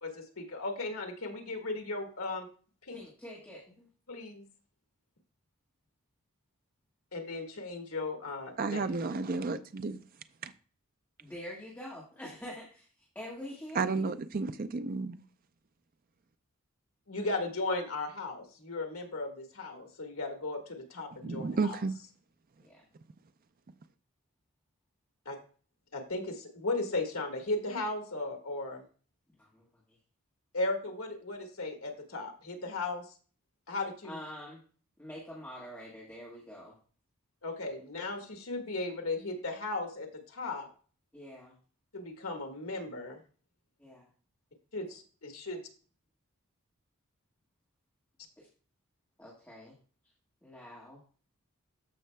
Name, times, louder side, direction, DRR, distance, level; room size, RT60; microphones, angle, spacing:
voice 1, 0.0-2.5 2.9-3.0 4.1-4.4 7.1-9.0 17.1-21.8 25.2-25.4 25.9-28.8 30.5-33.0 33.7-34.2 37.4-40.7 41.9-43.2 44.7-45.6, left 2 dB, 80° left, 1.6 m, -36 dB
voice 2, 2.9-3.9 11.2-14.2 22.6-22.8 29.4-30.0 34.0-34.6 35.0-36.7 41.1-41.5 43.8-44.1 48.4-48.5 49.2-49.7 50.4-51.0, left 1 dB, 10° left, 1.7 m, -46 dB
voice 3, 8.6-10.0 10.4-10.5 13.7-15.2 21.2-22.0, right 4 dB, 40° right, 0.5 m, -32 dB
14.0 x 5.5 x 2.2 m
head